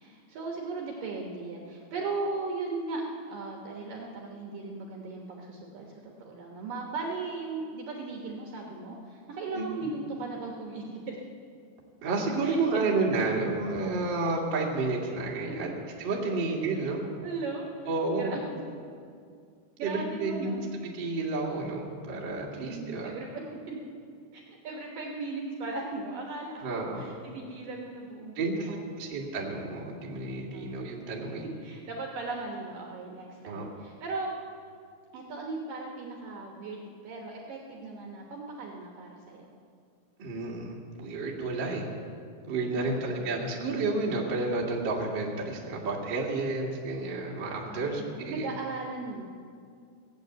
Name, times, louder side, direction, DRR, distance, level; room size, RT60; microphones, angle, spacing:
voice 1, 0.0-11.2 12.4-12.9 15.1-15.2 15.4-15.5 17.2-17.7 18.2-18.4 19.8-20.6 22.6-23.8 24.3-26.7 26.9-28.4 28.7-29.0 30.5-30.8 31.6-34.3 35.1-39.5 42.8-43.2 47.7-49.2, right 3 dB, 70° right, 0 dB, 2.2 m, -37 dB
voice 2, 12.0-15.7 16.0-17.0 17.8-18.4 19.8-20.6 20.9-23.1 26.6-27.0 28.3-31.4 33.4-33.7 40.2-41.9 42.5-48.5, right 3 dB, 50° right, -2 dB, 1.3 m, -31 dB
17.5 x 8.3 x 8.0 m, 2.3 s
omnidirectional pair, 5.4 m